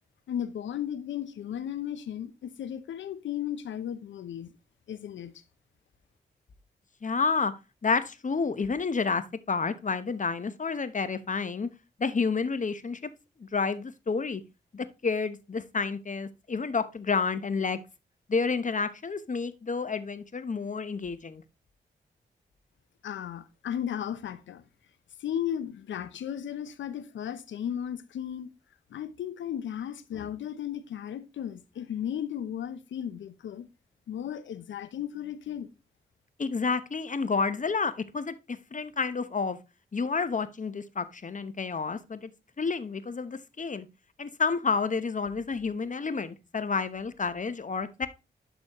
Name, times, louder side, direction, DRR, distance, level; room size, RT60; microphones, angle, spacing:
voice 1, 0.3-4.5 4.9-5.3 23.0-24.6 25.2-28.5 28.9-33.7 34.1-35.7, left 9 dB, 80° left, 0.8 m, -35 dB
voice 2, 7.0-7.5 7.8-11.7 12.0-13.1 13.4-14.4 14.7-17.8 18.3-21.4 36.4-39.6 39.9-42.3 42.6-43.9 44.2-48.1, left 4 dB, 40° left, 0.9 m, -30 dB
11.5 x 4.1 x 3.0 m
supercardioid pair, 45°, 19 cm